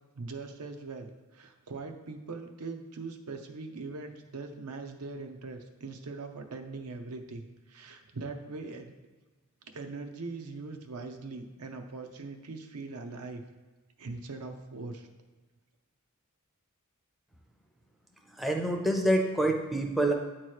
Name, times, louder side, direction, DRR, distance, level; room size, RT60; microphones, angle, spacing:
voice 1, 0.1-8.9 9.7-13.4 14.0-15.1, right 3 dB, 80° right, 5 dB, 0.6 m, -41 dB
voice 2, 18.3-20.1, right 1 dB, ahead, 1 dB, 0.5 m, -27 dB
8.6 x 2.9 x 4.7 m, 1.3 s
head